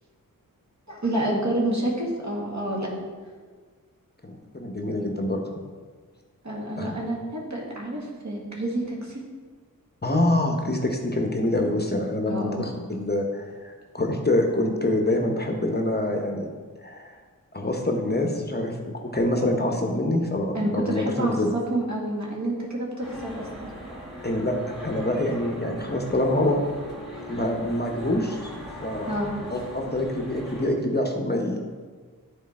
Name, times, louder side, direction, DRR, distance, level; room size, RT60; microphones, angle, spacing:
voice 1, 0.9-2.9 6.4-9.2 12.3-12.7 20.5-23.7 29.1-29.3, right 1 dB, 55° right, -3 dB, 1.9 m, -28 dB
voice 2, 4.3-5.4 6.8-7.0 10.0-16.5 16.8-17.1 17.5-18.7 19.0-21.5 24.2-26.6 27.3-28.5 28.8-29.1 29.5-31.6, left 1 dB, 30° left, 2 dB, 0.9 m, -25 dB
sound 1, 23.0-30.7, equal, ahead, 2.1 m, -40 dB
10.0 x 4.2 x 4.2 m, 1.5 s
wide cardioid pair, 60°, 34 cm